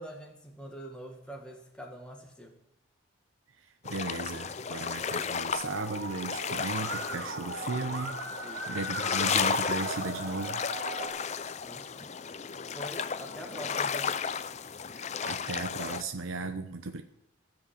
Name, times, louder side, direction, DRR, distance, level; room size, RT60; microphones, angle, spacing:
voice 1, 0.0-2.6 8.4-8.8 11.7-12.1 12.7-14.2, right 1 dB, 5° left, 0 dB, 1.7 m, -45 dB
voice 2, 3.6-8.2 8.7-10.6 14.9-17.0, right 3 dB, 75° right, 8 dB, 0.8 m, -36 dB
sound 1, 3.8-16.0, left 6 dB, 35° left, 0.5 m, -34 dB
Musical instrument, 5.5-11.1, right 2 dB, 60° right, 2.9 m, -38 dB
15.5 x 6.3 x 8.5 m, 0.85 s
head